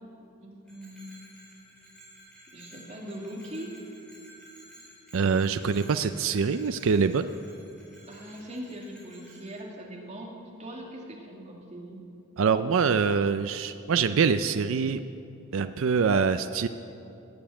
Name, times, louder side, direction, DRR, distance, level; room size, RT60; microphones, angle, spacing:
voice 1, 0.4-1.7 2.5-3.8 8.1-12.0, equal, 30° right, -2 dB, 2.3 m, -41 dB
Bell, 0.6-9.6, equal, ahead, 4.6 m, -53 dB
voice 2, 5.1-7.3 12.4-15.0 15.5-16.7, right 5 dB, 65° right, 10 dB, 0.4 m, -24 dB
19.0 x 7.0 x 8.8 m, 2.7 s
head